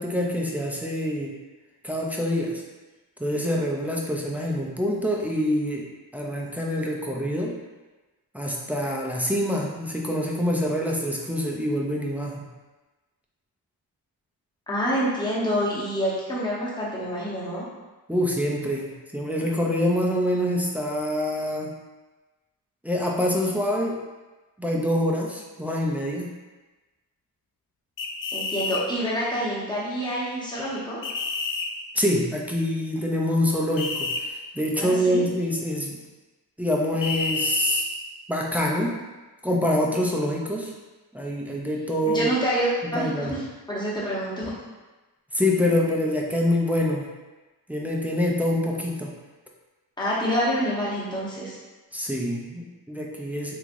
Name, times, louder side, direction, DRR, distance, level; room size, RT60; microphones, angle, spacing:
voice 1, 0.0-1.3 1.8-2.6 3.2-5.8 6.1-7.5 8.3-12.5 18.1-21.7 22.8-24.0 24.6-26.3 32.0-36.0 36.6-37.8 38.3-38.9 39.4-40.7 41.1-42.3 42.9-43.3 45.3-47.1 47.7-49.1 51.9-53.6, left 1 dB, 5° right, -2 dB, 0.3 m, -25 dB
voice 2, 14.7-17.6 28.3-31.0 34.8-35.2 42.1-43.4 43.7-44.5 50.0-51.6, equal, 10° left, -7 dB, 0.9 m, -27 dB
sound 1, 28.0-28.8 31.0-31.7 33.8-34.2 37.0-37.8, left 4 dB, 60° left, 0.5 m, -28 dB
3.5 x 3.2 x 2.5 m, 1.2 s
wide cardioid pair, 125°, 38 cm